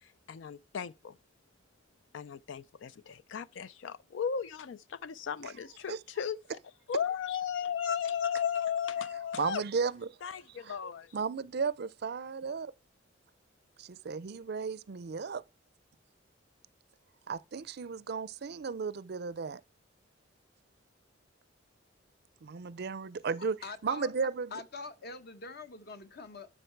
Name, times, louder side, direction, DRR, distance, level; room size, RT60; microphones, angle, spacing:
voice 1, 0.0-1.2 2.1-6.4 6.9-9.6 10.2-11.1, left 7 dB, 70° left, 0.4 m, -35 dB
voice 2, 9.4-10.2 10.6-10.8 11.1-12.7 13.8-15.4 17.3-19.6 22.4-23.6 23.8-24.5, right 5 dB, 55° right, 0.5 m, -34 dB
voice 3, 23.4-24.1 24.5-26.5, left 3 dB, 55° left, 1.2 m, -44 dB
12.5 x 5.4 x 4.6 m
head